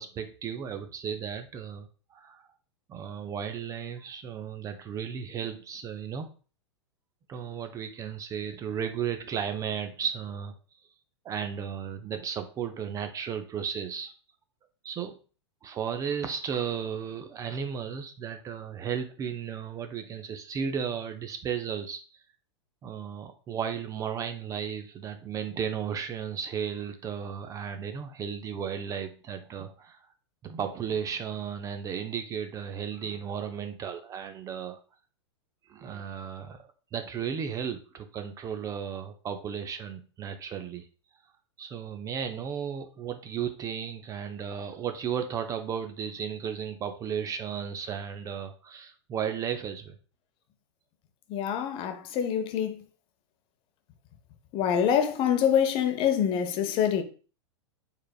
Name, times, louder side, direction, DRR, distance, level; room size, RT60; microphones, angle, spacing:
voice 1, 0.0-2.5 2.9-6.3 7.3-10.5 11.2-14.1 14.8-15.2 15.6-22.0 22.8-30.0 30.4-34.8 35.7-36.6 36.9-40.9 41.6-50.0, right 7 dB, 20° right, 0.4 m, -34 dB
voice 2, 51.3-52.8 54.5-57.0, left 8 dB, 35° left, 0.6 m, -25 dB
4.5 x 3.5 x 2.3 m
hypercardioid pair, 100°, 15 cm